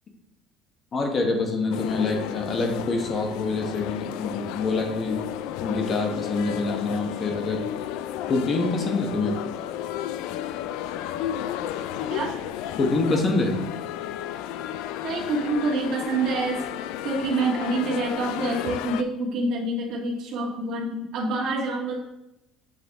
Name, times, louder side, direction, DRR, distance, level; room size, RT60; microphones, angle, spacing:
voice 1, 0.9-5.2 5.6-7.6 8.3-9.4 12.8-13.6, left 3 dB, 30° left, 3 dB, 1.1 m, -26 dB
sound 1, 1.7-19.0, left 11 dB, 80° left, 0.3 m, -32 dB
voice 2, 15.0-16.6 17.0-22.0, right 2 dB, 55° right, -2 dB, 1.6 m, -26 dB
7.5 x 4.6 x 3.5 m, 0.90 s
cardioid pair, 150°, 0 cm